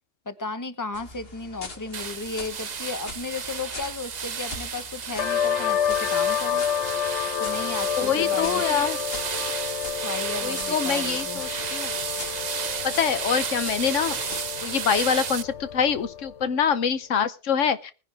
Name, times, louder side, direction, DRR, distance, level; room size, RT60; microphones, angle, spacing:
voice 1, 0.2-6.6 7.4-8.6 10.0-11.4, left 3 dB, 15° left, 10 dB, 1.1 m, -34 dB
sound 1, 0.9-15.0, left 3 dB, 50° left, 2.2 m, -44 dB
sound 2, 1.9-15.4, right 6 dB, 40° right, 0.7 m, -32 dB
sound 3, 5.2-16.5, left 8 dB, 70° left, 1.1 m, -30 dB
voice 2, 8.0-9.0 10.4-11.9 12.8-14.2 14.6-17.9, left 7 dB, 85° left, 12 dB, 1.3 m, -25 dB
20.0 x 10.5 x 3.5 m, 0.34 s
omnidirectional pair, 1.2 m